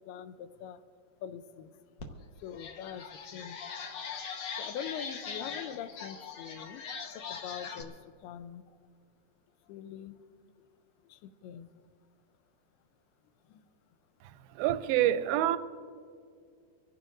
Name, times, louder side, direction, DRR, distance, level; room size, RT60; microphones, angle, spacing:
voice 1, 0.1-0.8 1.2-1.7 2.4-3.0 3.3-3.6 4.6-6.8 7.2-7.9 8.2-8.6 9.7-10.2 11.1-11.7 13.5-13.6, left 9 dB, 85° left, 11 dB, 2.6 m, -43 dB
sound 1, 2.0-2.1 2.5-7.8, left 6 dB, 65° left, 1.7 m, -41 dB
voice 2, 14.6-15.6, right 12 dB, 80° right, 12 dB, 2.3 m, -26 dB
25.5 x 16.5 x 2.6 m, 2.1 s
omnidirectional pair, 4.6 m